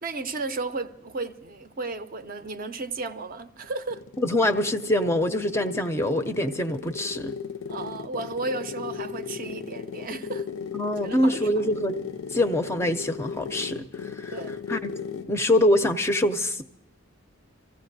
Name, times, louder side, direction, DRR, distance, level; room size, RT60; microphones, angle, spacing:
voice 1, 0.0-4.0 7.7-10.5 11.0-11.8 14.3-14.6, right 3 dB, 45° right, 0.5 m, -34 dB
sound 1, 3.6-15.4, left 6 dB, 75° left, 0.4 m, -36 dB
voice 2, 4.2-7.3 10.7-12.0 12.3-14.4 14.7-14.9 15.3-16.6, left 1 dB, 15° left, 0.4 m, -24 dB
26.0 x 15.0 x 2.6 m
head